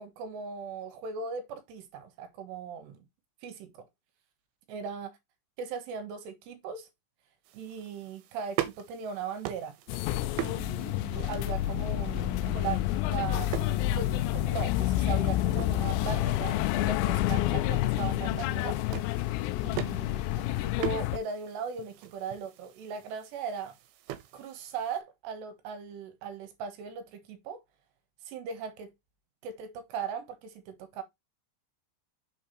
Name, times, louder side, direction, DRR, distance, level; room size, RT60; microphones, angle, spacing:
voice 1, 0.0-3.0 3.4-3.9 4.7-5.1 5.6-6.9 7.5-9.8 10.4-18.8 19.6-20.3 20.8-23.8 24.3-27.6 28.3-28.9 29.4-31.0, right 6 dB, 70° right, 3.3 m, -38 dB
sound 1, 7.5-25.0, right 14 dB, 90° right, 3.4 m, -42 dB
sound 2, 9.9-21.2, left 15 dB, 85° left, 2.5 m, -29 dB
7.1 x 5.7 x 3.0 m
omnidirectional pair, 5.4 m